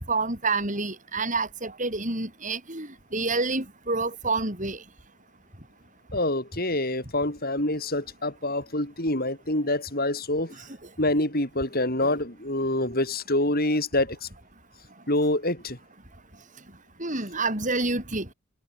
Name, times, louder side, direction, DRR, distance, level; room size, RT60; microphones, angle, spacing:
voice 1, 0.1-4.8 17.0-18.3, right 3 dB, 35° right, 6.3 m, -28 dB
voice 2, 6.1-10.5 11.0-14.3 15.1-15.8, left 1 dB, 40° left, 7.2 m, -26 dB
head